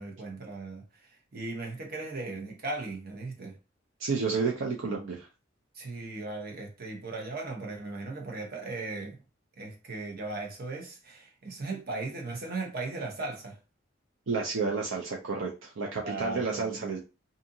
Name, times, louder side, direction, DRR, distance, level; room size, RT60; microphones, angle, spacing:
voice 1, 0.0-3.6 5.7-9.2 9.6-13.6 16.0-16.9, right 3 dB, 50° right, 0.8 m, -37 dB
voice 2, 4.0-5.3 14.3-17.0, right 4 dB, 70° right, 0.5 m, -31 dB
2.7 x 2.5 x 2.6 m
head